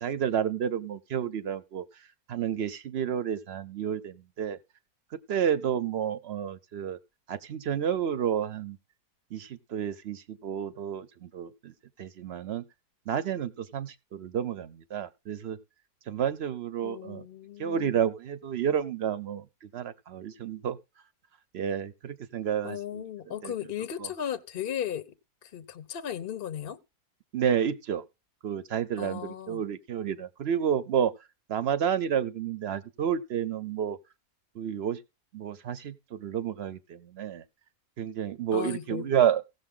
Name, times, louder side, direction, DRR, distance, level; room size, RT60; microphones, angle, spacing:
voice 1, 0.0-1.8 2.3-4.6 5.3-7.0 7.3-8.8 9.3-11.7 12.0-12.6 13.1-15.6 16.1-17.2 17.6-20.8 21.5-23.0 23.4-23.5 24.0-24.1 27.3-28.0 28.4-31.1 31.5-34.0 34.6-35.0 35.3-37.4 38.0-39.4, right 8 dB, 55° right, 0.7 m, -30 dB
voice 2, 16.8-18.0 22.6-25.1 25.5-26.8 29.0-29.6 38.5-39.1, left 9 dB, 50° left, 0.7 m, -36 dB
16.5 x 6.7 x 3.7 m
omnidirectional pair, 1.7 m